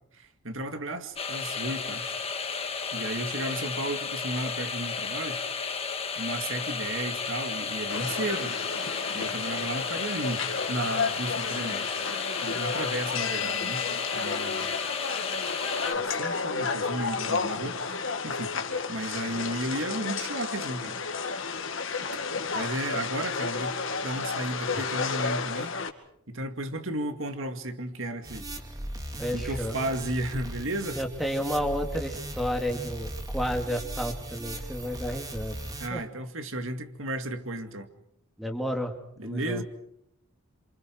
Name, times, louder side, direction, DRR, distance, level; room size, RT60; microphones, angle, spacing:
voice 1, 0.1-2.2 2.9-5.4 6.2-8.5 9.1-11.8 12.4-13.8 14.1-14.8 15.9-18.5 18.9-21.0 22.1-22.2 22.5-25.8 26.3-28.4 29.3-31.0 35.8-37.9 39.2-39.6, right 1 dB, 60° right, 2.3 m, -34 dB
sound 1, 1.2-15.9, left 5 dB, 25° left, 1.8 m, -33 dB
sound 2, 7.9-25.9, left 5 dB, 55° left, 2.3 m, -32 dB
sound 3, 28.2-35.9, right 1 dB, 15° right, 2.6 m, -37 dB
voice 2, 29.2-29.8 31.0-35.6 35.9-36.0 38.4-38.9 39.2-39.6, equal, ahead, 2.8 m, -31 dB
29.5 x 27.5 x 4.7 m
head